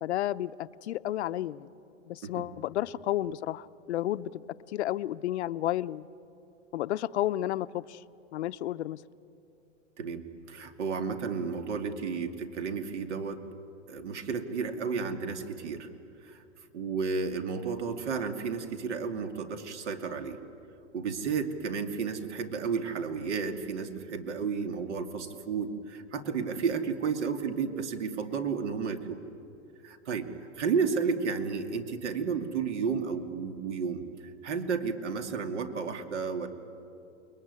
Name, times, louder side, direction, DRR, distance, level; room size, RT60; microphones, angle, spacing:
voice 1, 0.0-1.7 2.1-4.3 4.7-6.1 6.7-8.0 8.3-9.0, left 13 dB, 65° left, 13 dB, 0.8 m, -31 dB
voice 2, 10.0-13.4 13.9-15.9 16.2-16.4 16.7-20.4 20.9-29.2 29.8-30.3 30.6-36.5, right 5 dB, 65° right, 6 dB, 2.6 m, -32 dB
29.0 x 21.0 x 9.7 m, 2.8 s
hypercardioid pair, 150°, 37 cm